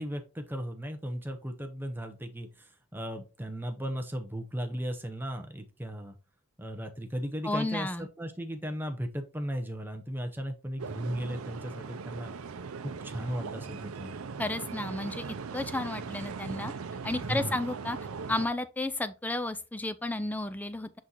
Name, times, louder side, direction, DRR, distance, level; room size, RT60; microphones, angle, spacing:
voice 1, 0.0-6.2 6.6-12.3 12.8-14.2 17.2-17.6, equal, 10° right, 0.7 m, -36 dB
voice 2, 7.4-8.1 14.4-16.7 17.0-18.0 18.3-21.0, left 2 dB, 10° left, 0.3 m, -32 dB
sound 1, 10.8-18.5, right 5 dB, 85° right, 0.5 m, -39 dB
6.1 x 5.5 x 3.0 m
head